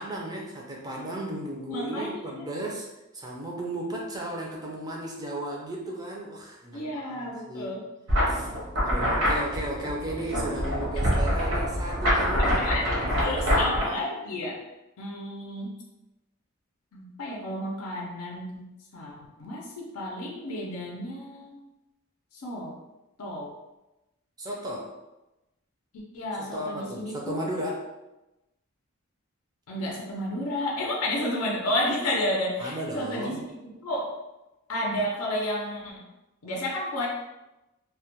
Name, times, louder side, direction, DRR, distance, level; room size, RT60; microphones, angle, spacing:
voice 1, 0.0-2.9 3.1-7.7 8.2-8.5 8.8-13.8 24.4-25.0 26.4-27.9 32.6-33.4, right 1 dB, 20° right, -2 dB, 0.4 m, -35 dB
voice 2, 1.7-2.4 6.7-7.8 12.6-12.8 13.2-14.6 15.0-15.8 16.9-18.7 18.9-21.6 22.3-22.8 23.2-23.5 25.9-27.4 29.7-34.1 34.7-36.0 36.4-37.1, left 1 dB, 85° left, -2 dB, 0.5 m, -31 dB
sound 1, 8.1-13.8, equal, 60° right, 0.7 m, -25 dB
2.2 x 2.1 x 2.8 m, 0.98 s
head